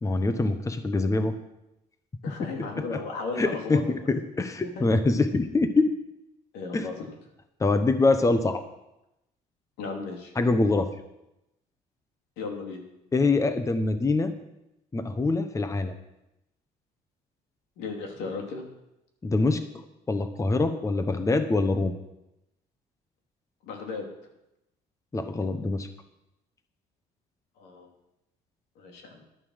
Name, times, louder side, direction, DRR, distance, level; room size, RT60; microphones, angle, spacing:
voice 1, 0.0-1.4 2.8-3.0 3.4-5.9 6.7-6.9 7.6-8.6 10.4-10.9 13.1-14.3 14.9-15.9 19.2-19.7 20.1-21.9 25.1-25.9, left 3 dB, 20° left, 9 dB, 0.9 m, -24 dB
voice 2, 2.2-3.8 4.6-4.9 6.5-6.9 9.8-10.3 12.4-12.8 17.8-18.6 23.6-24.0 27.6-27.9 28.8-29.2, left 4 dB, 90° left, 2 dB, 2.9 m, -35 dB
11.5 x 9.8 x 6.4 m, 0.89 s
cardioid pair, 110°, 17 cm